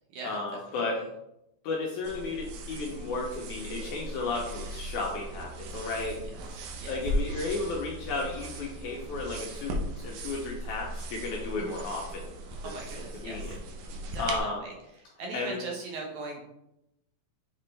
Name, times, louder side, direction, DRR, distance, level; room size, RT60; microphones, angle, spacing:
voice 1, 0.2-1.0 1.6-6.2 6.9-12.3 12.6-12.8 13.1-13.5 14.2-14.6 15.3-15.6, left 3 dB, 75° left, -1 dB, 1.9 m, -33 dB
sound 1, 2.0-14.4, right 1 dB, 85° right, 2.7 m, -37 dB
voice 2, 6.6-7.0 11.6-11.9 12.6-13.6 14.1-14.7 15.2-16.4, right 3 dB, 70° right, -1 dB, 2.0 m, -40 dB
6.9 x 4.3 x 3.2 m, 0.85 s
omnidirectional pair, 4.1 m